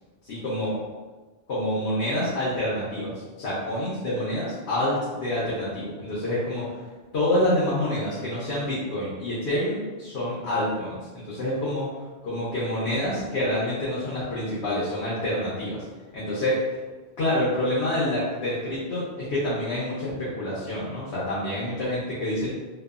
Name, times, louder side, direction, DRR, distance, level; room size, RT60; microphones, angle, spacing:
voice 1, 0.2-0.7 1.5-3.1 3.4-6.8 7.1-11.9 12.2-15.8 16.1-16.8 17.2-22.5, left 1 dB, 90° left, -8 dB, 1.0 m, -27 dB
3.0 x 2.0 x 2.3 m, 1.3 s
omnidirectional pair, 1.1 m